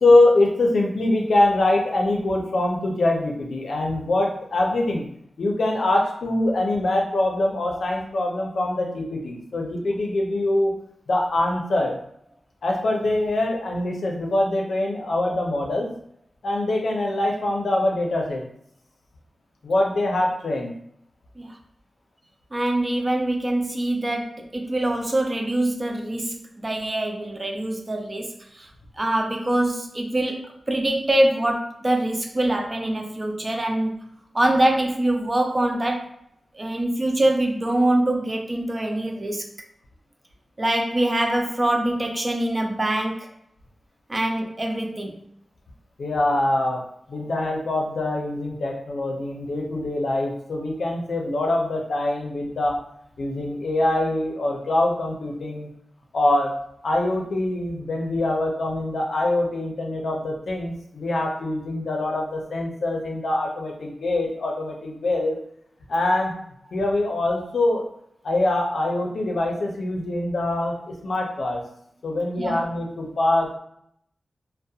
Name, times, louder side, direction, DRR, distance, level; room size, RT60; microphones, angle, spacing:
voice 1, 0.0-5.0 5.4-10.8 11.1-12.0 12.6-15.9 16.4-18.4 19.6-20.7 46.0-46.8 47.1-52.8 53.2-55.7 56.1-56.5 56.8-65.4 65.9-66.3 66.7-67.9 68.2-71.6 72.0-73.6, left 2 dB, 80° left, 0 dB, 0.5 m, -23 dB
voice 2, 22.5-28.7 29.0-34.0 34.3-36.1 36.5-39.5 40.6-43.3 44.1-45.2 72.4-72.6, right 1 dB, 30° right, 2 dB, 0.4 m, -24 dB
2.7 x 2.1 x 2.3 m, 0.71 s
wide cardioid pair, 110°, 0 cm